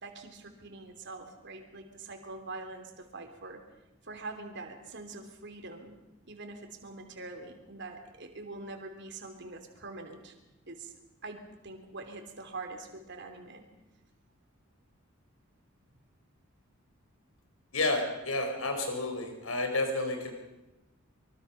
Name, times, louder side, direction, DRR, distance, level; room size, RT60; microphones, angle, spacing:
voice 1, 0.0-3.6 4.0-6.0 6.3-10.3 10.7-10.9 11.2-13.7, right 3 dB, 55° right, 4 dB, 3.3 m, -44 dB
voice 2, 17.7-20.3, left 2 dB, 85° left, 5 dB, 4.7 m, -30 dB
25.0 x 23.5 x 5.9 m, 1.0 s
head